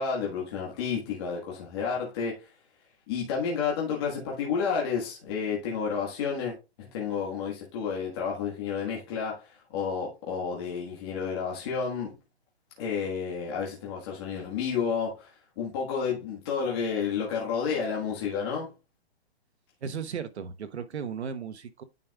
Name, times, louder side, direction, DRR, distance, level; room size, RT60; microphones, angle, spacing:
voice 1, 0.0-2.5 3.1-12.1 12.8-18.7, left 6 dB, 25° left, 1.5 m, -31 dB
voice 2, 19.8-21.8, right 7 dB, 85° right, 1.2 m, -35 dB
9.5 x 5.2 x 2.3 m
hypercardioid pair, 175°, 32 cm